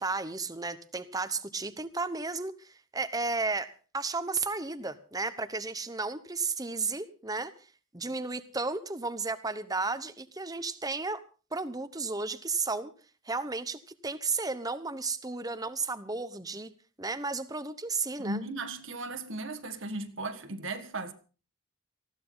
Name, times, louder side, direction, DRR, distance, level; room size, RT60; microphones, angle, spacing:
voice 1, 0.0-7.5 7.9-11.2 11.5-12.9 13.2-16.7 17.0-18.4, right 3 dB, 15° right, 1.0 m, -33 dB
voice 2, 18.2-21.1, right 2 dB, 60° right, 1.7 m, -36 dB
19.0 x 15.5 x 4.0 m
head